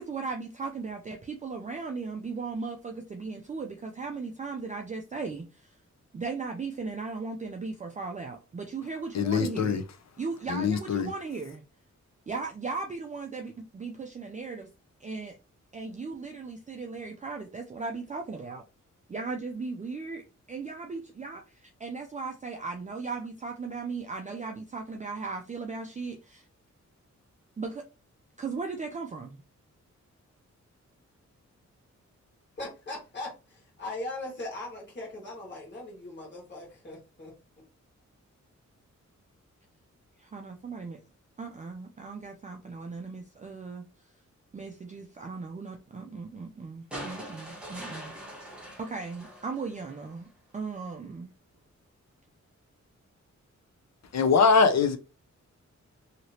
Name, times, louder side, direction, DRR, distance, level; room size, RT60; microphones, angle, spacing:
voice 1, 0.0-5.8 6.1-9.8 10.2-11.6 12.3-14.7 15.0-15.3 15.7-18.6 19.1-26.5 27.6-27.8 28.4-29.4 40.2-41.0 41.4-44.1 44.5-48.2 48.8-51.3, right 4 dB, 25° right, 0.4 m, -37 dB
voice 2, 9.1-9.8 10.5-11.1 54.1-55.0, left 5 dB, 65° left, 0.6 m, -22 dB
voice 3, 32.6-37.3, left 2 dB, 40° left, 1.6 m, -39 dB
sound 1, 46.9-50.2 51.5-51.6, right 1 dB, 5° right, 1.0 m, -43 dB
3.0 x 2.8 x 2.8 m
wide cardioid pair, 150°, 29 cm